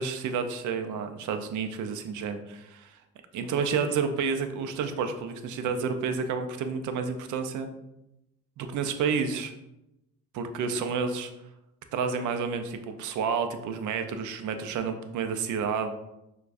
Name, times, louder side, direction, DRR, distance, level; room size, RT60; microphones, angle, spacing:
voice 1, 0.0-3.0 3.3-7.7 8.6-9.5 10.3-11.3 11.9-15.9, right 5 dB, 80° right, 8 dB, 0.5 m, -30 dB
6.6 x 2.3 x 2.5 m, 0.90 s
cardioid pair, 90°, 30 cm